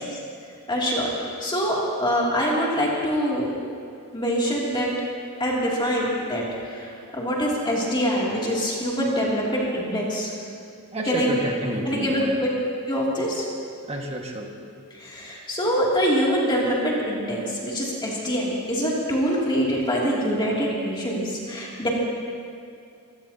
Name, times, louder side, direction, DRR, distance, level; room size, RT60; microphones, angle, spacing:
voice 1, 0.7-3.6 4.1-4.9 5.4-10.3 11.0-11.3 11.8-12.5 12.9-13.5 15.0-21.9, equal, 20° left, -5 dB, 2.8 m, -24 dB
voice 2, 10.9-12.4 13.9-14.5 14.9-15.0, right 1 dB, 30° right, 0 dB, 1.8 m, -30 dB
23.5 x 17.0 x 2.9 m, 2.4 s
head